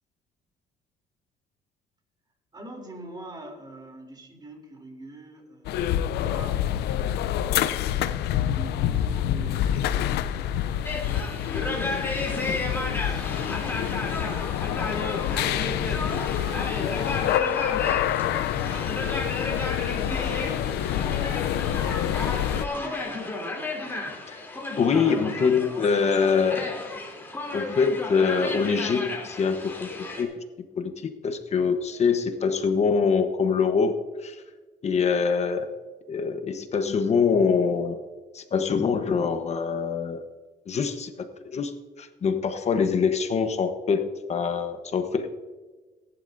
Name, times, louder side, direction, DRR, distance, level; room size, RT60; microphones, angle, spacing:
voice 1, 2.5-7.1 7.4-11.0 11.4-14.6 15.2-19.4 19.9-23.3 24.5-24.8 25.0-25.5, right 2 dB, 25° right, 2 dB, 3.4 m, -45 dB
sound 1, 5.6-22.7, left 11 dB, 80° left, 0.7 m, -27 dB
sound 2, 10.8-30.2, left 2 dB, 15° left, 3.4 m, -33 dB
voice 2, 24.8-27.0 27.5-29.9 30.2-30.3 30.8-34.4 34.8-35.7 36.1-38.0 38.3-40.2 40.7-41.7 42.0-45.3, left 5 dB, 40° left, 7 dB, 1.2 m, -24 dB
18.5 x 11.0 x 2.7 m, 1.3 s
cardioid pair, 110°, 17 cm